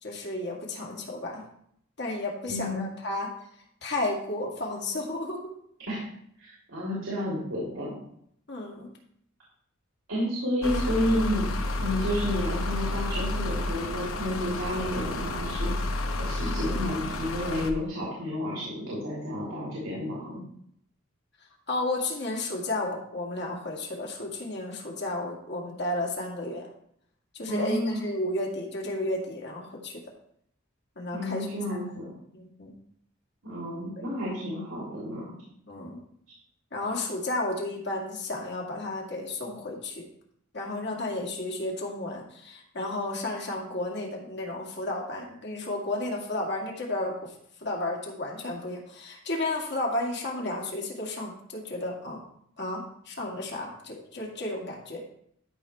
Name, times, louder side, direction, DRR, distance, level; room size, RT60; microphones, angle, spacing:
voice 1, 0.0-1.4 2.0-3.3 3.8-5.6 8.5-8.9 10.6-10.7 21.7-26.7 27.3-30.0 31.0-31.5 32.3-32.7 35.7-36.0 36.7-40.1 40.5-47.3 47.6-52.2 52.6-55.0, left 2 dB, 55° left, -1 dB, 2.2 m, -32 dB
voice 2, 2.5-2.9 5.9-6.1 6.4-7.9 10.1-11.5 11.8-15.9 16.2-20.4 27.5-28.0 31.1-32.0 33.4-35.3, left 1 dB, 90° right, -7 dB, 3.2 m, -31 dB
sound 1, 10.6-17.7, left 2 dB, 80° left, 0.9 m, -30 dB
13.0 x 5.9 x 3.3 m, 0.69 s
head